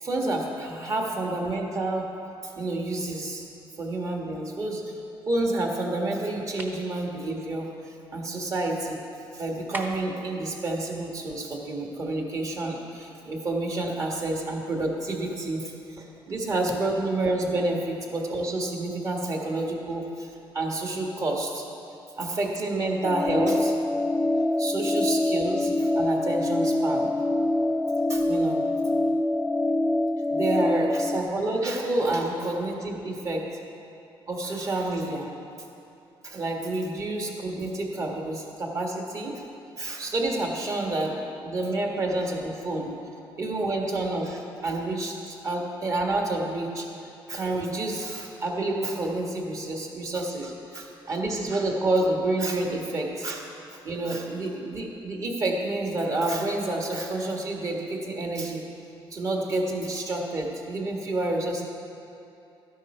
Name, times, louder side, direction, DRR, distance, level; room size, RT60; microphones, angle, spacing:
voice 1, 0.0-2.0 2.4-3.5 3.8-4.9 5.3-7.7 8.1-9.0 9.3-21.6 22.2-23.7 24.6-27.1 28.1-28.6 30.3-33.4 34.3-35.3 36.2-39.3 39.8-41.2 41.4-42.9 43.4-46.9 47.3-53.4 53.7-58.6 59.1-61.6, right 2 dB, 40° right, 0 dB, 1.6 m, -29 dB
sound 1, 6.6-6.8 9.7-10.2, right 1 dB, 20° right, 1.0 m, -36 dB
sound 2, 23.0-31.2, left 1 dB, 5° left, 0.3 m, -25 dB
13.0 x 10.5 x 4.4 m, 2.7 s
cardioid pair, 140°, 9 cm